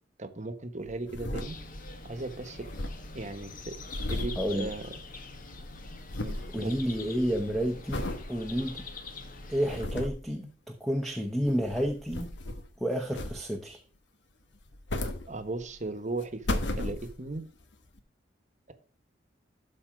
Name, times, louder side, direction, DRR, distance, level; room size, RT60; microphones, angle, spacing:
voice 1, 0.2-1.6 2.0-2.7 3.1-3.7 4.1-4.9 6.2-6.8 15.3-17.4, right 2 dB, 40° right, 10 dB, 1.1 m, -37 dB
sound 1, 0.8-2.3 2.5-5.3 5.6-6.6 7.0-7.3 7.9-8.3 8.8-8.9 9.4-10.3 11.3-12.7 13.1-13.7 14.5-15.8 16.2-17.4 18.0-18.1, left 1 dB, 85° left, 1.2 m, -35 dB
sound 2, 1.4-9.8, left 3 dB, 50° left, 1.4 m, -44 dB
voice 2, 4.3-4.7 6.5-8.8 9.5-12.4 12.8-13.8, equal, ahead, 3 dB, 1.0 m, -30 dB
12.5 x 4.2 x 5.1 m, 0.38 s
head